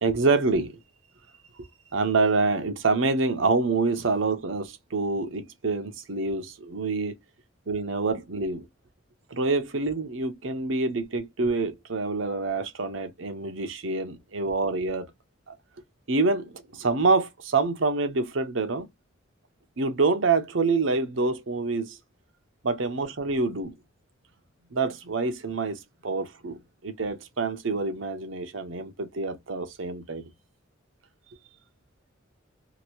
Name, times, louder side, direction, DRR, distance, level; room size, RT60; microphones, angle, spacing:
voice 1, 0.0-0.8 1.6-7.1 7.7-8.7 9.3-15.1 15.5-15.6 16.1-18.9 19.8-22.0 22.6-23.7 24.7-30.3, right 3 dB, 75° right, 0.8 m, -26 dB
2.9 x 2.6 x 2.8 m
head